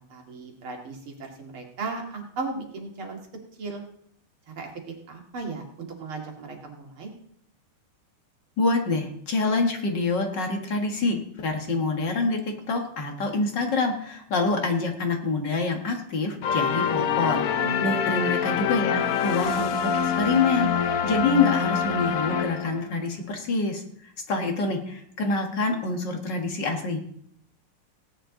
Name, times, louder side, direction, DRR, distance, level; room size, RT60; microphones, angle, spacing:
voice 1, 0.1-3.2 3.6-3.8 4.6-4.7 5.1-7.1 17.6-17.9, right 3 dB, 75° right, 1 dB, 3.0 m, -36 dB
voice 2, 8.6-12.4 12.7-20.7 21.0-27.0, left 3 dB, 55° left, 4 dB, 2.2 m, -26 dB
sound 1, 16.4-23.0, left 7 dB, 80° left, 0.7 m, -25 dB
17.0 x 10.0 x 3.9 m, 0.68 s
omnidirectional pair, 2.4 m